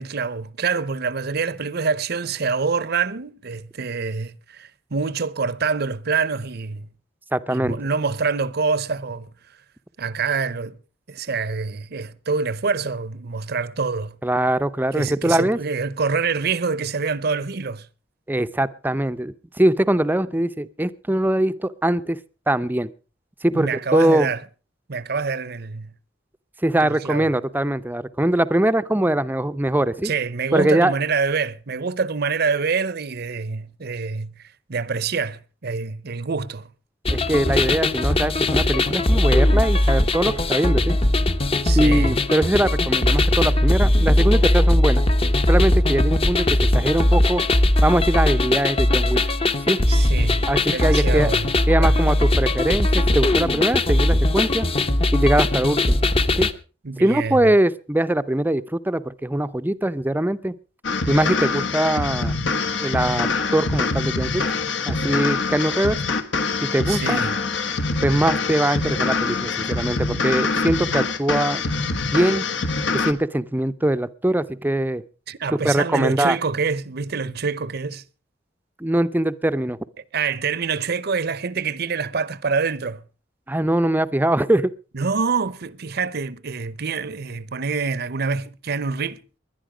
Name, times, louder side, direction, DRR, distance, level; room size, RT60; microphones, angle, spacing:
voice 1, 0.0-6.9 7.5-9.3 10.0-10.8 11.1-14.2 15.0-17.9 23.5-24.4 24.9-25.9 26.8-27.3 30.0-36.7 41.6-42.2 49.9-51.5 51.8-52.0 56.8-57.5 66.9-67.4 75.3-78.0 80.1-83.0 84.9-89.2, right 5 dB, 55° right, 0.8 m, -26 dB
voice 2, 7.3-7.8 14.2-15.6 18.3-22.2 22.5-22.9 23.4-24.3 26.6-30.1 30.5-30.9 37.1-41.0 41.7-45.0 45.5-47.4 47.8-49.2 49.7-49.8 50.5-51.3 51.7-54.7 55.1-56.0 56.3-56.5 57.0-60.6 61.1-62.4 62.8-64.4 64.9-66.0 66.6-67.2 68.0-71.6 72.1-72.5 72.9-75.0 75.5-76.4 78.8-79.8 83.5-84.7, right 1 dB, 10° right, 0.6 m, -22 dB
sound 1, 37.0-56.5, left 1 dB, 30° left, 1.0 m, -19 dB
sound 2, 60.8-73.1, left 4 dB, 70° left, 1.4 m, -24 dB
20.5 x 11.0 x 5.0 m
head